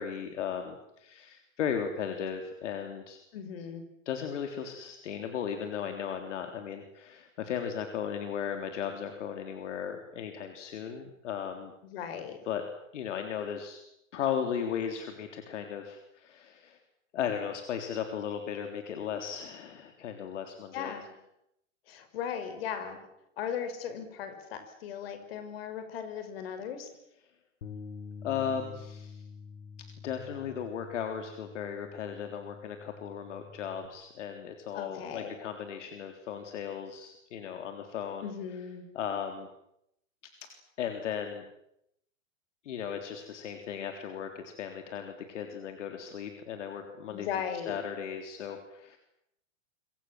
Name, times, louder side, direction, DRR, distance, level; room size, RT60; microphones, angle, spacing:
voice 1, 0.0-3.2 4.1-11.7 12.4-12.6 12.9-13.8 14.1-16.8 17.1-21.0 28.2-29.2 30.0-38.3 38.9-39.5 40.8-41.4 42.6-47.3 47.6-49.0, left 8 dB, 65° left, 5 dB, 3.8 m, -36 dB
voice 2, 3.3-3.8 11.8-12.4 20.7-21.1 21.9-23.0 23.4-26.9 34.7-35.3 38.2-38.9 47.1-47.8, left 8 dB, 50° left, 9 dB, 5.7 m, -37 dB
Bass guitar, 27.6-33.9, left 5 dB, 80° left, 4.1 m, -47 dB
26.5 x 25.5 x 7.7 m, 0.78 s
hypercardioid pair, 165°, 39 cm